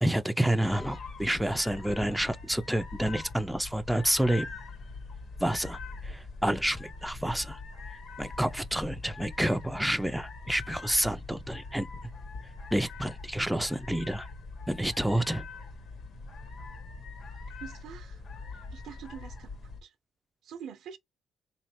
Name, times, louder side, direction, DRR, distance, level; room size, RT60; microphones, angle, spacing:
voice 1, 0.0-4.5 5.4-7.6 7.9-11.9 12.7-14.3 14.7-15.5, right 1 dB, 5° right, 0.3 m, -29 dB
sound 1, 0.6-19.8, left 3 dB, 65° left, 1.3 m, -43 dB
voice 2, 17.6-18.2 18.7-19.5 19.8-19.9 20.4-21.0, right 8 dB, 75° right, 0.6 m, -44 dB
3.6 x 3.1 x 2.8 m
cardioid pair, 90°, 0 cm